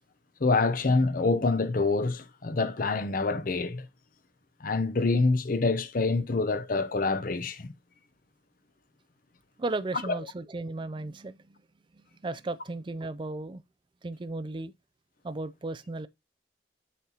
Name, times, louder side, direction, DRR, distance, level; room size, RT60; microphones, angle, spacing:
voice 1, 0.4-3.9 4.6-7.7, left 3 dB, 50° left, 0.7 m, -26 dB
voice 2, 9.6-11.6 12.2-13.6 14.0-14.7 15.2-16.1, right 2 dB, 25° right, 0.4 m, -35 dB
8.3 x 5.7 x 2.8 m
head